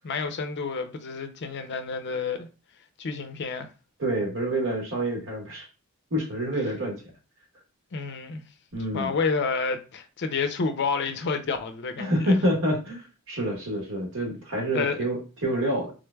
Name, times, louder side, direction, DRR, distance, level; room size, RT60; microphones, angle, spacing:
voice 1, 0.0-2.5 3.0-3.7 7.9-8.4 8.9-12.4 14.7-15.0, left 4 dB, 50° left, 0.5 m, -29 dB
voice 2, 4.0-5.7 6.1-7.0 8.7-9.1 12.0-15.9, right 1 dB, 60° right, 1.3 m, -27 dB
3.8 x 3.2 x 2.2 m
head